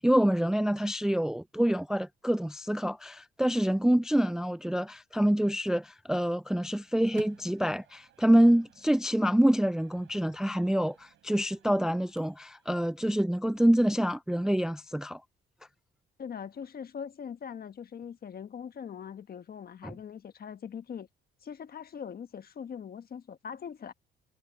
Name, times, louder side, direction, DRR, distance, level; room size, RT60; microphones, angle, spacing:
voice 1, 0.0-15.2 19.8-20.0, equal, 5° right, 0.4 m, -26 dB
Microwave oven, 6.7-12.7, right 12 dB, 75° right, 5.0 m, -57 dB
voice 2, 16.2-21.1 21.4-23.9, left 7 dB, 50° left, 1.3 m, -41 dB
cardioid pair, 90°, 20 cm